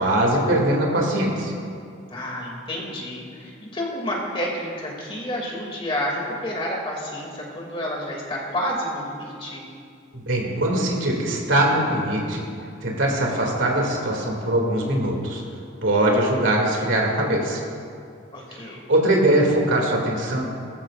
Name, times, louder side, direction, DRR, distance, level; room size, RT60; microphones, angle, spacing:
voice 1, 0.0-1.5 10.1-12.4 12.8-15.4 15.8-17.6 18.9-20.4, right 1 dB, 80° right, -1 dB, 2.6 m, -21 dB
voice 2, 2.1-9.7 18.3-18.8, equal, 30° left, -2 dB, 2.6 m, -30 dB
20.0 x 14.5 x 2.6 m, 2.4 s
head